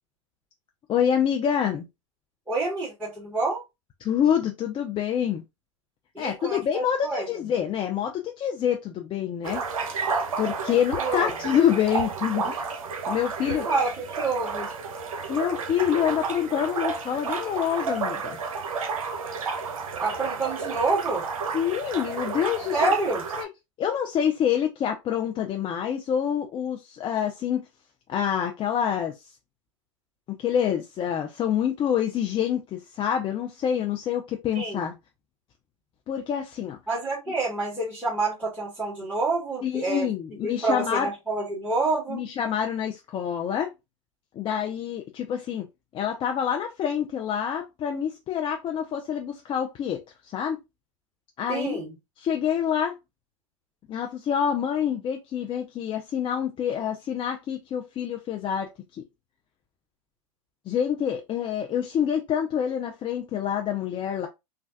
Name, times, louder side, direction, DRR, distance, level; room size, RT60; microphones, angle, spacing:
voice 1, 0.9-1.9 4.0-5.4 6.2-9.6 10.4-12.6 13.1-13.6 15.3-18.4 21.5-22.9 23.4-23.5 23.8-27.7 28.1-29.3 30.4-34.9 36.1-36.8 39.6-41.1 42.1-43.7 44.4-45.7 45.9-50.6 51.4-51.8 52.2-53.0 53.9-59.0 60.7-64.3, left 9 dB, 30° left, 0.4 m, -27 dB
voice 2, 2.5-3.6 6.1-7.3 11.0-11.3 13.4-14.7 20.0-21.2 22.7-23.2 34.5-34.9 36.9-40.1 40.4-42.2 51.5-51.9, right 3 dB, 10° right, 1.5 m, -27 dB
sound 1, 9.4-23.4, right 5 dB, 80° right, 0.6 m, -31 dB
3.2 x 2.2 x 2.6 m
hypercardioid pair, 95°, 18 cm